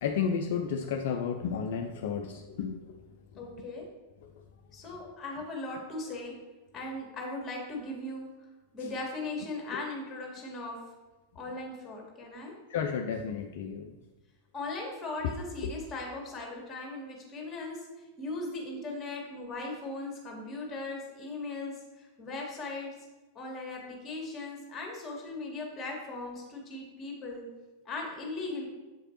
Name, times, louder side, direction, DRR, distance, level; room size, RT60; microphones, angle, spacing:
voice 1, 0.0-2.8 12.7-13.9, left 6 dB, 55° left, 4 dB, 0.4 m, -32 dB
voice 2, 3.4-3.9 4.7-6.4 6.7-8.3 8.7-10.8 11.3-12.5 14.5-17.8 18.2-22.9 23.3-27.5 27.8-28.7, left 2 dB, 20° left, 0 dB, 1.7 m, -38 dB
7.3 x 4.9 x 2.9 m, 1.1 s
figure-of-eight pair, 90°, 0 cm